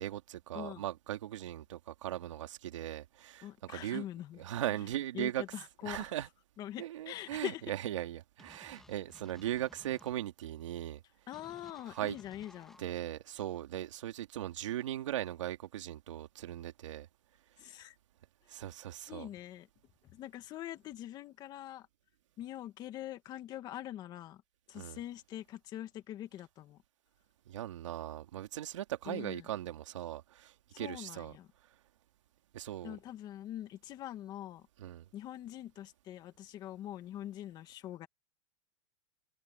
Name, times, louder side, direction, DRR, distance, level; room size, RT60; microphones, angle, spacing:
voice 1, 0.0-4.0 4.4-5.4 5.8-6.3 6.8-11.0 11.9-12.2 12.8-17.1 18.5-19.3 24.7-25.0 27.5-31.3 32.5-33.0 34.8-35.1, right 12 dB, 85° right, 2.5 m, -39 dB
voice 2, 3.4-4.4 5.1-6.1 6.6-7.6 11.3-12.9 17.6-18.0 19.1-19.7 20.0-21.9 22.4-24.4 24.7-26.8 29.1-29.5 30.7-31.5 32.8-34.7 35.1-38.1, left 12 dB, 25° left, 2.1 m, -44 dB
sound 1, 8.4-10.1 11.3-12.9, left 1 dB, ahead, 2.2 m, -58 dB
supercardioid pair, 160°, 16 cm